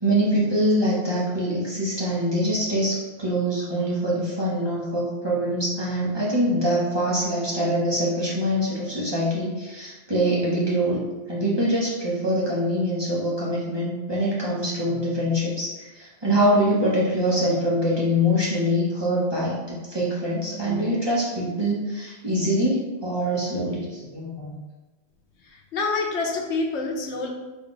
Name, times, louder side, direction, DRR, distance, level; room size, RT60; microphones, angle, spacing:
voice 1, 0.0-24.5, equal, 25° right, -7 dB, 0.7 m, -24 dB
voice 2, 25.4-27.3, left 3 dB, 85° left, 1 dB, 0.9 m, -27 dB
3.6 x 2.3 x 3.8 m, 1.2 s
omnidirectional pair, 1.1 m